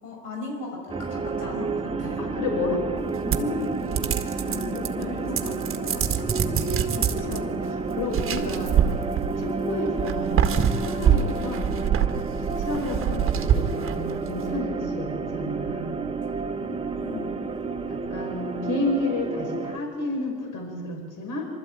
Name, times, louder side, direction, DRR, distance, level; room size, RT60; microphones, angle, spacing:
voice 1, 0.0-2.2 4.4-6.0 13.0-13.3 17.0-17.4, left 3 dB, 85° left, -1 dB, 6.0 m, -38 dB
sound 1, 0.9-19.8, right 4 dB, 10° right, 1.2 m, -30 dB
voice 2, 2.2-2.9 3.2-3.8 4.1-4.4 4.6-8.8 9.2-11.7 12.4-15.9 16.6-16.8 17.9-21.5, left 2 dB, 45° left, 2 dB, 5.6 m, -32 dB
sound 2, 3.3-5.0 5.3-7.4 8.1-9.5 10.0-14.3, right 8 dB, 30° right, 1.7 m, -25 dB
24.0 x 13.5 x 8.8 m, 2.2 s
hypercardioid pair, 85°, 44 cm